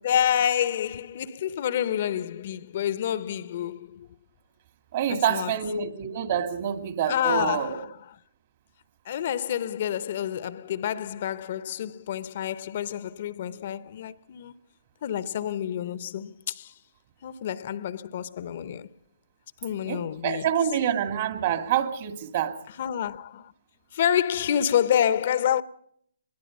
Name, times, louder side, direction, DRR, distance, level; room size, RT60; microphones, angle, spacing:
voice 1, 0.0-4.1 5.1-5.6 7.1-8.2 9.1-14.5 15.0-16.7 17.2-18.9 19.6-20.5 22.7-23.5 23.9-25.6, left 10 dB, 50° left, 0.7 m, -28 dB
voice 2, 4.9-7.8 19.9-22.6, right 9 dB, 50° right, 2.5 m, -27 dB
25.0 x 21.0 x 5.3 m
hypercardioid pair, 140°, 0 cm